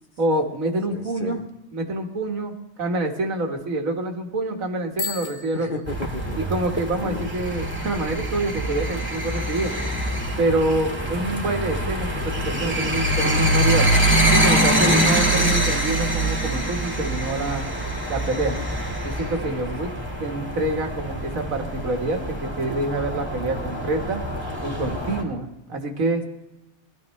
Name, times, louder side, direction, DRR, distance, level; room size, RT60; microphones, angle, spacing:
voice 1, 0.2-1.4 1.7-2.5 2.8-5.7 6.4-9.7 10.4-13.9 14.3-17.7 18.1-18.5 19.0-19.9 20.2-24.2 24.6-26.2, right 2 dB, 80° right, 3 dB, 1.9 m, -26 dB
voice 2, 0.9-1.4 5.5-6.4 7.0-7.3 14.8-15.6, left 5 dB, 45° left, 6 dB, 0.9 m, -33 dB
Bicycle bell, 4.9-6.7, left 4 dB, 85° left, 1.8 m, -35 dB
sound 1, 5.9-25.2, right 1 dB, 10° right, 1.9 m, -24 dB
21.0 x 13.0 x 3.2 m, 0.93 s
omnidirectional pair, 1.4 m